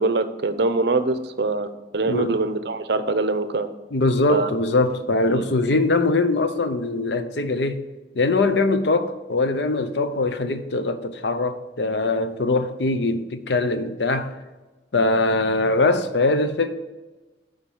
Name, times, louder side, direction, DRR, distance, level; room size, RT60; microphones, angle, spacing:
voice 1, 0.0-3.7 4.3-4.5 5.3-5.4, right 3 dB, 65° right, 0.6 m, -23 dB
voice 2, 2.1-2.4 3.9-7.8 8.1-14.3 14.9-16.7, left 2 dB, 70° left, 0.7 m, -22 dB
7.3 x 5.1 x 7.1 m
head